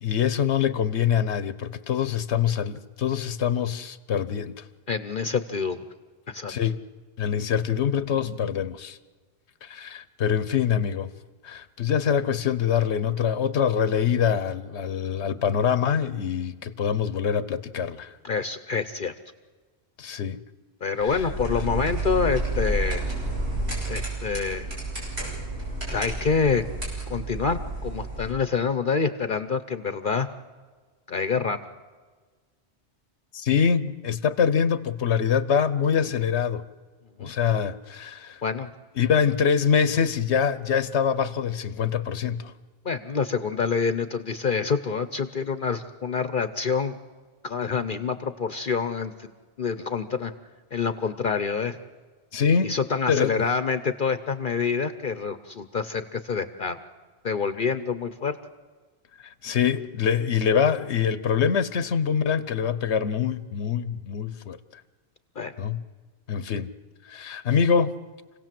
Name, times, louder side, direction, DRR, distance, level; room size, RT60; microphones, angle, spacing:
voice 1, 0.0-4.6 6.5-6.8 7.2-9.0 9.6-11.1 11.4-18.2 20.0-20.4 21.0-21.2 33.3-36.6 37.2-38.4 39.0-42.5 52.3-52.7 53.1-53.3 59.4-64.8 65.6-65.8 66.3-66.7 67.1-67.9, left 7 dB, 80° left, 1.1 m, -24 dB
voice 2, 4.9-5.8 6.3-6.5 18.2-19.1 20.8-23.1 23.8-24.7 25.9-26.7 27.1-30.3 31.1-31.6 37.2-37.3 38.4-38.7 42.8-47.0 47.4-49.3 49.6-50.3 50.7-51.8 52.6-56.8 57.2-58.4 65.4-65.5, left 5 dB, 50° left, 1.0 m, -27 dB
sound 1, 21.0-28.3, right 2 dB, 65° right, 7.2 m, -30 dB
28.0 x 17.0 x 7.6 m
omnidirectional pair, 1.1 m